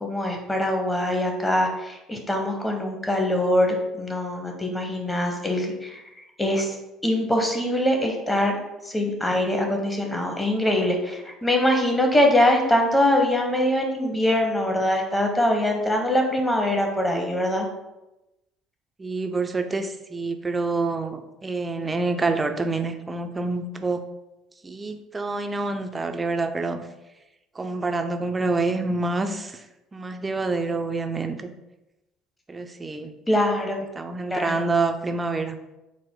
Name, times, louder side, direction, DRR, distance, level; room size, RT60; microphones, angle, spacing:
voice 1, 0.0-6.0 6.4-6.8 7.0-8.6 8.8-17.7 33.3-33.8 34.3-34.6, left 1 dB, 15° left, 2 dB, 0.9 m, -23 dB
voice 2, 19.0-24.0 24.6-26.9 27.6-29.6 29.9-31.5 32.5-33.1 34.0-35.6, right 3 dB, 25° right, 7 dB, 0.4 m, -27 dB
4.7 x 2.0 x 3.6 m, 0.96 s
hypercardioid pair, 65°, 0 cm